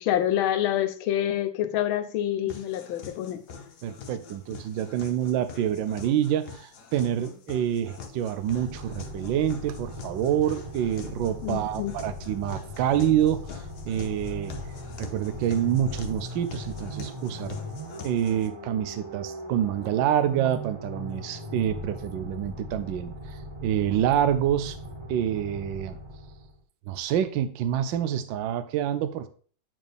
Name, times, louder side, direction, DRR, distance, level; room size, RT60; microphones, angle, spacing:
voice 1, 0.0-3.4 11.4-11.9, left 11 dB, 90° left, 1.5 m, -27 dB
sound 1, 2.5-18.5, left 6 dB, 65° left, 1.4 m, -45 dB
voice 2, 3.8-14.5 15.0-17.6 18.0-24.8 25.1-26.0 26.9-29.3, right 10 dB, 75° right, 1.3 m, -27 dB
sound 2, 8.5-26.6, left 1 dB, 15° right, 1.7 m, -39 dB
9.1 x 4.3 x 3.4 m
omnidirectional pair, 2.1 m